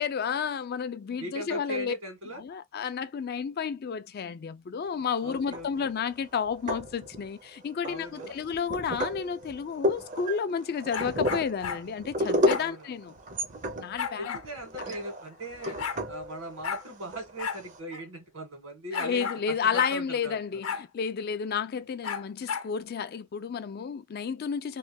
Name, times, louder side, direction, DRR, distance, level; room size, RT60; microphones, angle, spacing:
voice 1, 0.0-2.0 2.3-13.1 13.8-14.4 18.9-24.8, left 6 dB, 45° left, 0.3 m, -31 dB
voice 2, 1.2-2.4 5.2-5.9 7.8-8.4 12.6-12.9 14.2-15.8 16.1-20.6, right 1 dB, 70° right, 1.7 m, -39 dB
sound 1, 5.5-6.0 6.5-7.4 7.8-17.8, left 1 dB, 35° right, 0.5 m, -32 dB
sound 2, 10.9-11.8 12.5-12.7 14.0-14.5 15.3-15.4 15.6-16.0 16.6-16.8 17.4-17.6 17.9-18.0 18.9-19.4 19.7-20.0 20.6-20.9 22.0-22.7, left 7 dB, 70° left, 0.7 m, -33 dB
3.1 x 2.2 x 2.7 m
head